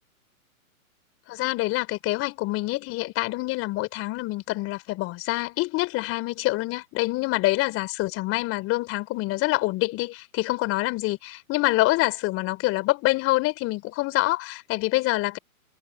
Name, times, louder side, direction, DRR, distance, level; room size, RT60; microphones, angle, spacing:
voice 1, 1.3-15.4, left 20 dB, 30° left, 4.4 m, -26 dB
hypercardioid pair, 125°, 43 cm